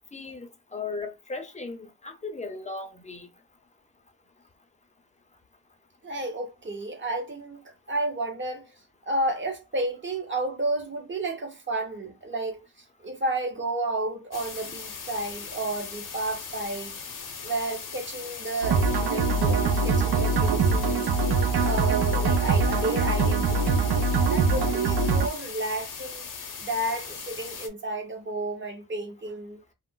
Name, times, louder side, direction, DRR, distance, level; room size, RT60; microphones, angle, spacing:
voice 1, 0.1-3.3, left 3 dB, 20° left, 0.5 m, -37 dB
voice 2, 6.0-7.6 7.9-8.7 9.1-12.6 13.0-21.0 21.6-23.9 24.3-29.6, right 2 dB, 30° right, 0.8 m, -31 dB
sound 1, 14.3-27.7, left 6 dB, 55° left, 0.6 m, -39 dB
sound 2, 18.6-25.3, right 4 dB, 90° right, 0.5 m, -23 dB
2.3 x 2.0 x 3.6 m
wide cardioid pair, 155°, 38 cm